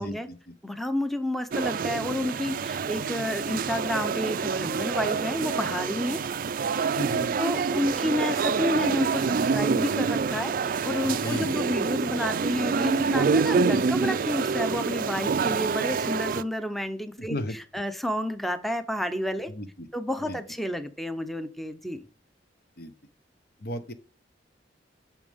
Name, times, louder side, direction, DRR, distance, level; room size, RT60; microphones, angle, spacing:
voice 1, 0.0-0.5 6.9-7.3 11.0-11.5 17.2-17.6 19.5-19.9 20.3-20.4 22.8-22.9 23.6-23.9, equal, 55° left, 9 dB, 1.0 m, -34 dB
voice 2, 0.6-6.2 7.4-19.5 19.9-22.1, left 1 dB, ahead, 9 dB, 0.7 m, -30 dB
sound 1, 1.5-16.4, right 5 dB, 50° right, 0.4 m, -27 dB
8.8 x 6.3 x 3.5 m, 0.41 s
head